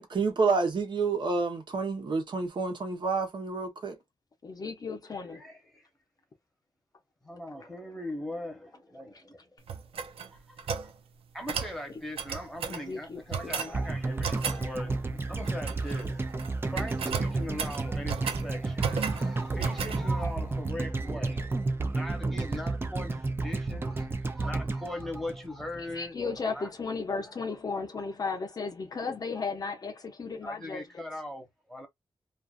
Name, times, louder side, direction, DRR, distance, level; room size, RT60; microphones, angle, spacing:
voice 1, 0.0-4.0, right 4 dB, 55° right, 0.9 m, -29 dB
voice 2, 4.4-5.5 12.7-13.8 25.9-30.8, left 4 dB, 40° left, 0.6 m, -35 dB
voice 3, 5.1-5.9 7.2-9.5 10.3-10.6 10.8-10.9 11.3-26.2 26.5-26.7 27.9-28.1 30.4-31.9, left 1 dB, ahead, 1.0 m, -40 dB
sound 1, 9.7-10.9 11.5-11.8 12.2-12.8 13.3-13.7 14.2-14.6 15.4-16.0 16.3-16.5 16.8-18.4 18.8-19.3 19.6-20.0, right 6 dB, 80° right, 0.4 m, -34 dB
sound 2, 13.7-25.9 26.2-26.3, right 3 dB, 25° right, 0.4 m, -32 dB
2.5 x 2.4 x 2.4 m
wide cardioid pair, 125°, 10 cm